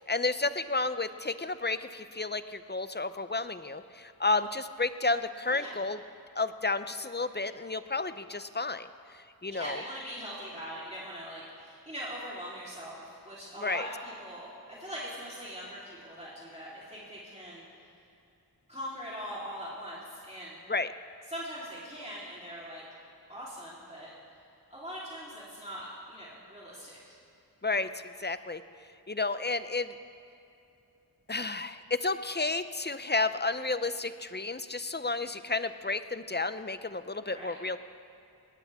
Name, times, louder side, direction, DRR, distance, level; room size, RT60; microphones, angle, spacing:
voice 1, 0.0-6.0 6.4-8.9 9.4-9.8 13.6-13.9 20.7-20.9 27.6-27.9 28.2-28.6 29.1-29.9 31.3-37.8, left 3 dB, 25° left, 12 dB, 0.7 m, -31 dB
voice 2, 9.5-17.6 18.7-20.6 21.3-22.8 23.3-24.1 24.7-27.2 37.3-37.6, equal, 15° right, -8 dB, 3.7 m, -41 dB
21.0 x 18.5 x 3.7 m, 2.7 s
wide cardioid pair, 40°, 40 cm